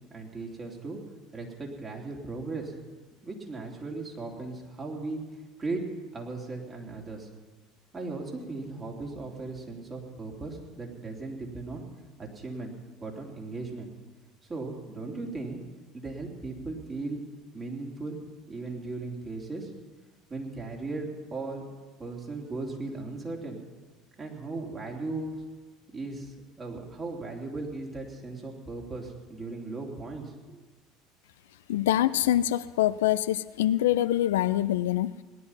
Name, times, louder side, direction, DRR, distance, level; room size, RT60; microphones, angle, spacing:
voice 1, 0.1-1.0 1.3-2.7 3.2-5.2 5.6-7.3 7.9-11.8 12.2-12.7 13.0-13.9 14.5-15.6 15.9-17.2 17.5-18.2 18.5-19.7 20.3-21.7 22.0-23.6 24.2-25.3 25.9-30.6, right 3 dB, 30° right, -1 dB, 3.4 m, -37 dB
voice 2, 31.7-35.2, left 13 dB, 75° left, 15 dB, 0.4 m, -25 dB
18.5 x 11.5 x 5.8 m, 1.3 s
figure-of-eight pair, 65°, 0 cm